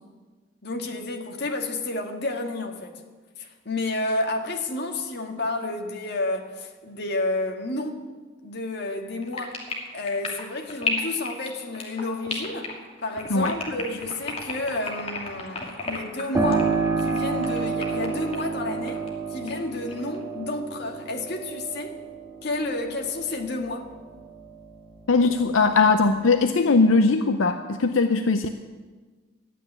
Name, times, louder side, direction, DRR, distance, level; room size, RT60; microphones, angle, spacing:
voice 1, 0.6-2.9 3.4-8.0 8.4-9.6 9.9-12.7 13.0-16.7 17.0-22.0 22.4-23.9, left 2 dB, 55° left, 3 dB, 1.8 m, -30 dB
sound 1, 9.2-19.1 19.5-20.2, left 3 dB, 30° left, 2.6 m, -33 dB
Piano, 16.3-24.8 25.2-26.2, right 4 dB, 15° right, 1.5 m, -30 dB
voice 2, 25.1-28.5, left 4 dB, 85° left, 8 dB, 0.7 m, -20 dB
13.0 x 9.1 x 9.7 m, 1.4 s
head